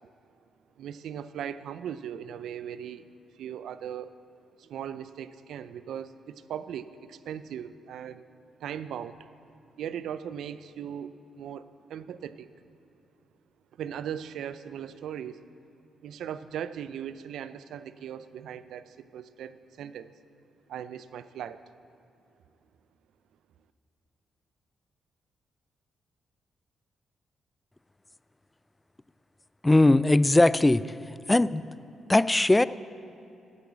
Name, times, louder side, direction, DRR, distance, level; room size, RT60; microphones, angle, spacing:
voice 1, 0.8-3.0 3.3-4.2 4.6-8.2 8.6-9.2 9.8-12.5 13.7-15.4 16.0-20.1 20.7-21.6, right 9 dB, 80° right, 13 dB, 0.4 m, -38 dB
voice 2, 29.6-30.8 31.3-31.6 32.1-32.6, left 2 dB, 15° left, 17 dB, 0.3 m, -19 dB
11.0 x 6.9 x 8.0 m, 2.8 s
cardioid pair, 70°, 0 cm